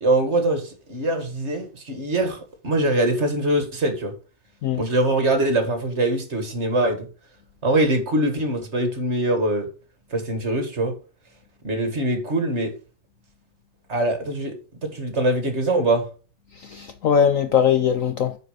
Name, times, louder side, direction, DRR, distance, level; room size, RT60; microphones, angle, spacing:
voice 1, 0.0-2.4 2.6-4.1 4.7-7.1 7.6-9.7 10.1-10.9 11.6-12.7 13.9-14.6 14.8-16.1, right 1 dB, 40° right, 1.9 m, -23 dB
voice 2, 16.6-18.4, left 8 dB, 65° left, 0.9 m, -20 dB
9.1 x 4.8 x 5.0 m
omnidirectional pair, 1.9 m